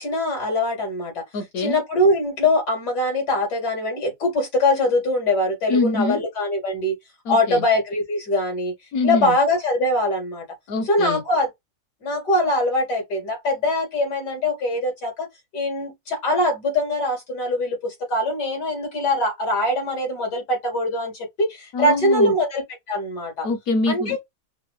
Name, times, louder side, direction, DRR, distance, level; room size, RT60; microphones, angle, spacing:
voice 1, 0.0-1.2 1.6-6.9 7.3-8.7 9.0-10.4 10.9-11.5 12.0-15.3 15.5-23.5 23.9-24.2, left 1 dB, 85° left, 2.7 m, -22 dB
voice 2, 1.3-1.8 5.7-6.3 7.2-7.7 8.9-9.4 10.7-11.2 21.7-22.3 23.4-24.2, left 3 dB, 65° left, 1.1 m, -24 dB
5.7 x 2.1 x 3.0 m
omnidirectional pair, 1.7 m